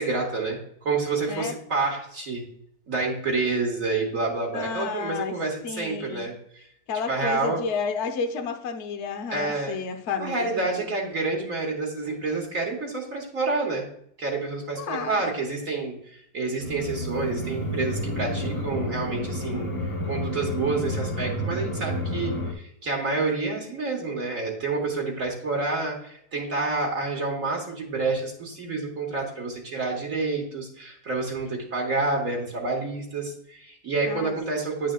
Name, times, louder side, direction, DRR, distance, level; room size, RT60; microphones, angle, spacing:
voice 1, 0.0-2.4 2.9-6.6 7.1-7.6 9.3-9.8 10.2-13.9 14.2-19.7 20.1-34.9, right 3 dB, 55° right, -1 dB, 1.8 m, -28 dB
voice 2, 4.5-5.3 5.6-6.3 6.9-10.9 14.8-15.2 34.0-34.3, left 5 dB, 50° left, 6 dB, 1.0 m, -31 dB
sound 1, 16.6-22.5, equal, 25° left, 0.9 m, -30 dB
10.5 x 6.3 x 2.3 m, 0.69 s
omnidirectional pair, 1.7 m